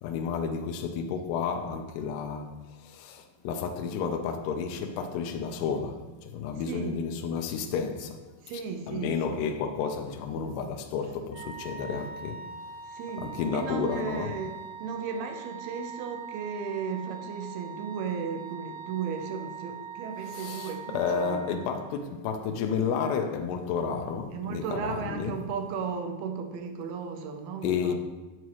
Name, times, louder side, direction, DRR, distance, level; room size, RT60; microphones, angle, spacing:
voice 1, 0.0-8.2 8.9-12.5 13.2-14.4 20.3-25.4 27.6-27.9, left 6 dB, 80° left, 2.7 m, -31 dB
voice 2, 6.7-7.0 8.4-9.4 12.9-14.5 14.8-21.4 24.3-27.9, right 6 dB, 75° right, 2.5 m, -35 dB
Wind instrument woodwind instrument, 11.3-22.1, right 6 dB, 35° right, 3.8 m, -42 dB
11.0 x 7.3 x 3.0 m
omnidirectional pair, 5.0 m